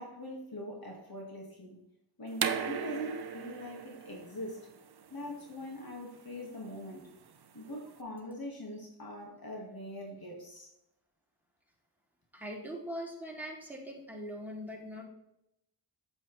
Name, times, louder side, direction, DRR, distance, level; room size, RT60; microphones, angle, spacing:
voice 1, 0.0-1.8 2.2-4.6 5.1-7.1 7.5-10.7, equal, 50° left, 0 dB, 1.9 m, -42 dB
sound 1, 2.3-7.9, right 7 dB, 55° right, 0.8 m, -39 dB
voice 2, 12.3-15.1, equal, 5° right, -2 dB, 2.7 m, -41 dB
8.6 x 8.2 x 3.2 m, 0.81 s
cardioid pair, 45°, 46 cm